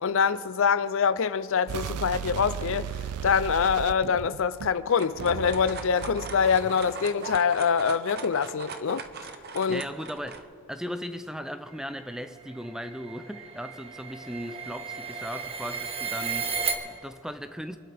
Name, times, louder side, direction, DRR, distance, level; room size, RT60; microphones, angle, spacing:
voice 1, 0.0-2.9 3.2-9.0 9.5-9.8, left 6 dB, 60° left, 0.5 m, -25 dB
sound 1, 1.7-4.8 5.2-7.4, right 8 dB, 90° right, 0.4 m, -36 dB
sound 2, 4.6-10.4, right 5 dB, 45° right, 0.8 m, -41 dB
voice 2, 9.7-17.8, equal, ahead, 0.4 m, -37 dB
sound 3, 12.0-16.7, right 6 dB, 25° right, 1.1 m, -34 dB
26.5 x 12.0 x 3.4 m
head